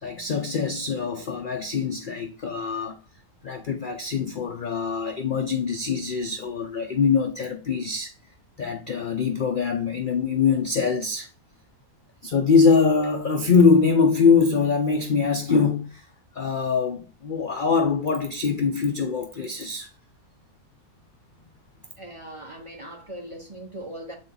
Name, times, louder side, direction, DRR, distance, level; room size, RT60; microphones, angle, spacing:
voice 1, 0.0-3.0 3.4-8.1 8.6-11.3 12.2-16.1 16.3-19.9, left 5 dB, 50° left, 0.7 m, -23 dB
voice 2, 22.0-24.2, right 1 dB, 20° right, 1.4 m, -39 dB
8.2 x 4.2 x 3.9 m
omnidirectional pair, 1.5 m